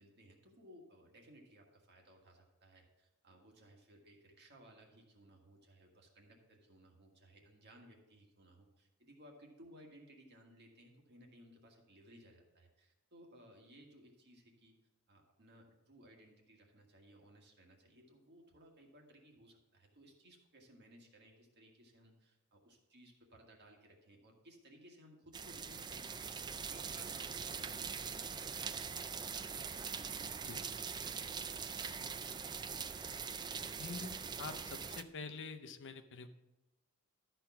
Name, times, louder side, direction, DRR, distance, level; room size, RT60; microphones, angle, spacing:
voice 1, 0.0-14.8 15.1-32.5, right 1 dB, 50° right, 1 dB, 1.7 m, -61 dB
sound 1, 25.3-35.0, right 6 dB, 20° right, 0.3 m, -42 dB
voice 2, 33.8-36.3, left 4 dB, 60° left, 9 dB, 0.7 m, -46 dB
12.5 x 4.5 x 5.8 m, 1.0 s
head